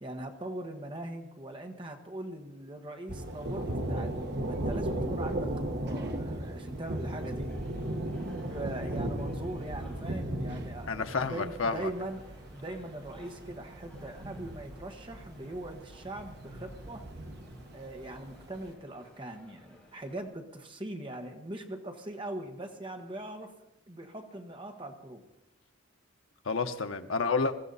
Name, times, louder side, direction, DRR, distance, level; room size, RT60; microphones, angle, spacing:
voice 1, 0.0-7.5 8.4-17.1 17.7-23.5 23.9-25.2, right 1 dB, 25° right, 4 dB, 1.4 m, -41 dB
Thunder, 3.1-18.6, right 1 dB, 50° right, 1.3 m, -36 dB
sound 1, 6.7-20.2, left 1 dB, 5° left, 6.0 m, -58 dB
voice 2, 10.9-11.9 26.4-27.5, left 4 dB, 85° left, 7 dB, 0.9 m, -30 dB
21.0 x 14.0 x 4.1 m, 0.91 s
head